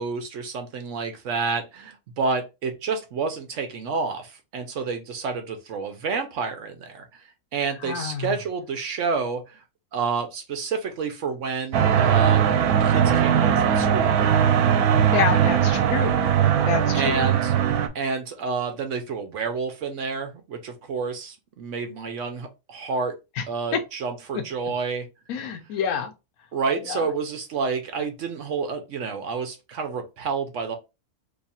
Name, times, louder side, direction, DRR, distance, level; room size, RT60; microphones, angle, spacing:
voice 1, 0.0-7.2 7.5-9.6 9.9-12.5 12.8-14.2 16.9-17.5 17.9-23.2 23.5-25.1 26.5-30.8, right 5 dB, 65° right, 0.9 m, -29 dB
voice 2, 7.8-8.3 15.1-16.3 16.6-17.3 23.4-23.5 23.7-23.8 24.3-24.4 25.3-26.1 26.9-27.1, left 7 dB, 80° left, 1.2 m, -27 dB
executed by guillotine, 11.7-17.9, right 8 dB, 85° right, 1.1 m, -20 dB
3.0 x 2.4 x 4.1 m
omnidirectional pair, 1.5 m